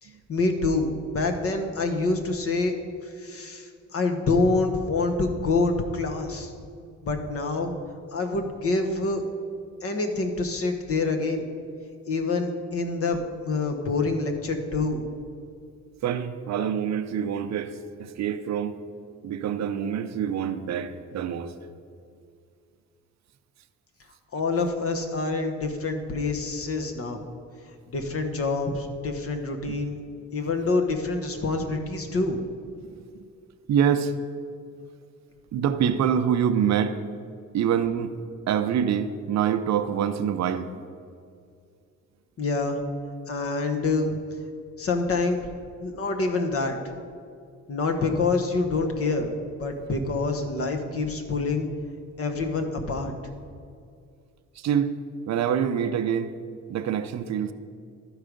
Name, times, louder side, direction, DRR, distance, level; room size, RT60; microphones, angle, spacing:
voice 1, 0.0-2.7 3.0-6.5 7.0-7.7 8.1-9.2 9.8-11.4 12.1-15.0 24.3-27.2 27.9-30.0 30.3-32.4 42.4-42.8 43.3-44.2 44.8-45.5 45.8-46.8 47.7-51.7 52.2-53.1, left 3 dB, 50° left, 5 dB, 1.1 m, -26 dB
voice 2, 16.0-18.8 19.2-21.5 32.8-32.9 33.7-34.1 35.5-37.0 37.5-38.2 38.5-40.8 54.6-54.9 55.3-56.4 56.7-57.5, right 8 dB, 65° right, 10 dB, 0.6 m, -25 dB
12.5 x 4.8 x 5.1 m, 2.3 s
cardioid pair, 90°, 30 cm